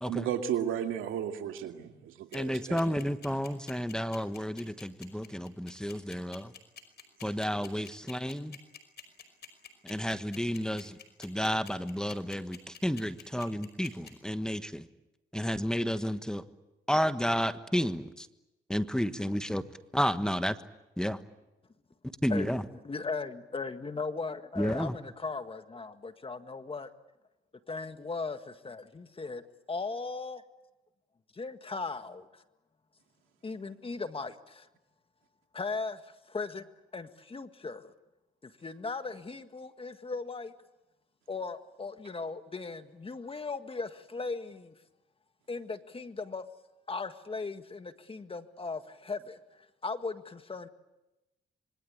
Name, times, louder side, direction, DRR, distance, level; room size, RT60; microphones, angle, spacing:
voice 1, 0.1-2.8, right 9 dB, 90° right, 5 dB, 2.4 m, -34 dB
sound 1, 2.3-14.1, left 8 dB, 55° left, 5.4 m, -48 dB
voice 2, 2.3-6.5 7.2-8.6 9.8-14.8 15.3-16.4 16.9-18.3 18.7-19.6 19.9-20.6 21.0-21.2 22.2-22.6 24.6-25.0, equal, 5° left, 11 dB, 1.4 m, -31 dB
voice 3, 22.8-26.9 27.7-29.4 29.7-30.4 31.3-32.4 33.4-34.7 35.5-36.7 36.9-37.9 38.4-40.5 41.3-44.7 45.5-46.5 46.9-50.7, left 4 dB, 30° left, 9 dB, 1.8 m, -38 dB
26.5 x 23.0 x 8.8 m, 0.99 s
cardioid pair, 90°, 20 cm